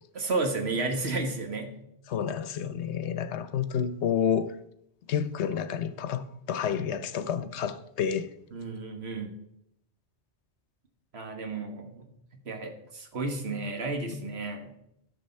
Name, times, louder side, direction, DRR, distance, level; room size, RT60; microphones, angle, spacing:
voice 1, 0.1-1.8 8.5-9.3 11.1-14.7, right 3 dB, 65° right, 1.7 m, -32 dB
voice 2, 2.1-4.5 5.1-8.3, left 8 dB, 75° left, 0.9 m, -29 dB
11.5 x 6.1 x 4.3 m
omnidirectional pair, 1.2 m